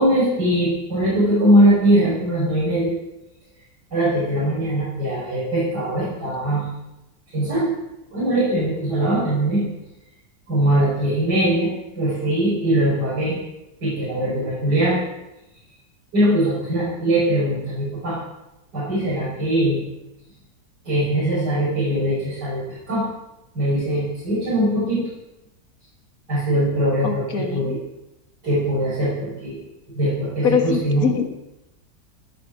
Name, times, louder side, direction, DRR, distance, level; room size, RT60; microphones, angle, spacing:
voice 1, 0.0-2.9 3.9-6.7 7.3-7.7 8.1-9.6 10.5-13.4 13.8-15.0 16.1-18.2 18.7-19.8 20.8-23.1 23.5-25.0 26.3-27.8 28.4-29.6 29.9-31.1, right 1 dB, 90° right, -9 dB, 6.3 m, -21 dB
voice 2, 27.0-27.8 30.4-31.3, left 6 dB, 60° left, 5 dB, 2.1 m, -23 dB
17.5 x 9.7 x 6.3 m, 0.92 s
omnidirectional pair, 1.8 m